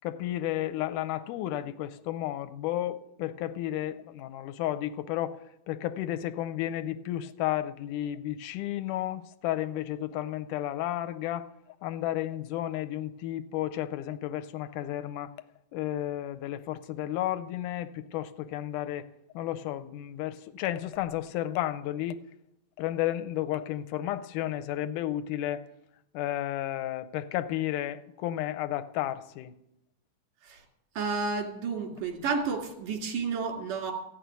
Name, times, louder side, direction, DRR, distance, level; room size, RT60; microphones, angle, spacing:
voice 1, 0.0-5.4 5.7-11.5 11.8-15.3 15.7-19.1 19.3-22.2 22.8-25.6 26.1-29.5, left 13 dB, 80° left, 2.1 m, -32 dB
voice 2, 31.0-33.9, right 5 dB, 90° right, 3.7 m, -31 dB
15.0 x 6.5 x 9.3 m
omnidirectional pair, 3.6 m